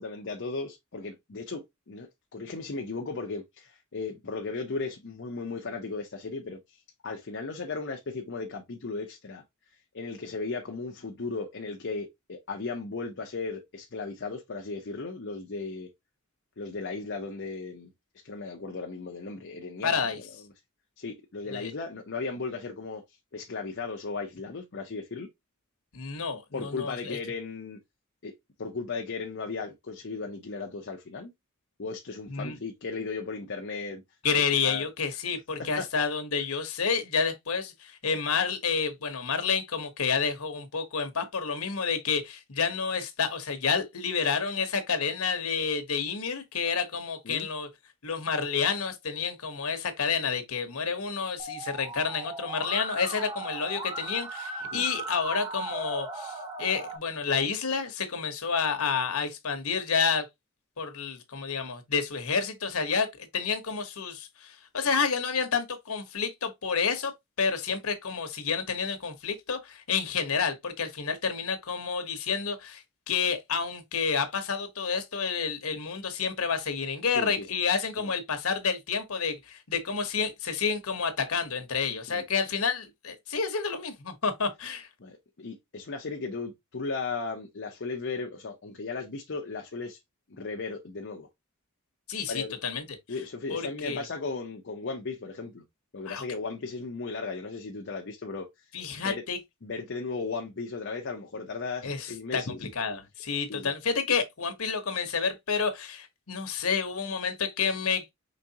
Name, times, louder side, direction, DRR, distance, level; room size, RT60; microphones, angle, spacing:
voice 1, 0.0-9.4 9.9-15.9 16.6-17.9 18.2-20.0 21.0-23.0 23.3-25.3 26.5-27.8 28.2-28.3 28.6-31.3 31.8-34.0 34.6-34.9 35.8-35.9 47.2-47.5 54.7-54.9 77.1-77.4 78.0-78.1 82.1-82.2 85.0-90.0 90.3-91.3 92.3-92.6 93.1-95.6 95.9-98.5 99.0-99.2 99.6-102.7 103.5-103.7, left 4 dB, 55° left, 0.8 m, -36 dB
voice 2, 19.8-20.2 21.5-21.7 25.9-27.2 32.3-32.6 34.2-47.7 48.0-60.3 60.8-67.1 67.4-84.9 92.1-92.8 93.5-94.0 96.1-96.2 98.7-99.4 101.8-108.1, left 5 dB, 80° left, 1.1 m, -29 dB
Musical instrument, 51.4-57.0, right 3 dB, 20° right, 0.8 m, -37 dB
5.1 x 3.5 x 2.8 m
head